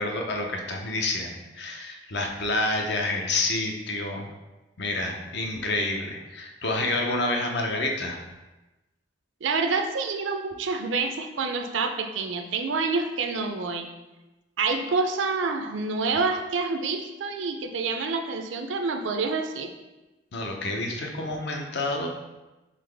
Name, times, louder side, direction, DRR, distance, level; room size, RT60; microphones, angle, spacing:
voice 1, 0.0-4.3 4.8-8.2 20.3-22.1, left 2 dB, 60° left, 2 dB, 0.6 m, -28 dB
voice 2, 9.4-13.9 14.6-19.7, right 4 dB, 75° right, 5 dB, 0.5 m, -27 dB
4.0 x 3.7 x 3.3 m, 1.1 s
head